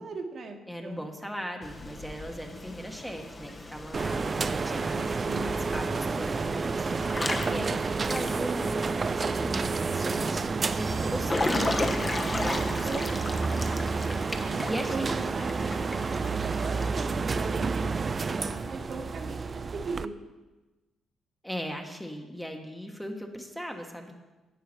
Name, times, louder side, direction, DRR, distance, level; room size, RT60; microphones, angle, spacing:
voice 1, 0.0-1.1 4.4-5.8 7.3-7.7 12.4-13.9 14.4-20.1, right 3 dB, 50° right, 3 dB, 1.3 m, -40 dB
voice 2, 0.7-12.9 13.3-14.0 14.7-15.2 21.4-24.1, equal, 5° left, 3 dB, 1.2 m, -39 dB
Water / Splash splatter / Drip, 1.6-16.9, left 2 dB, 25° left, 1.0 m, -36 dB
sound 1, 3.9-20.1, right 4 dB, 35° right, 0.4 m, -30 dB
10.5 x 8.4 x 4.4 m, 1.2 s
cardioid pair, 90°, 0 cm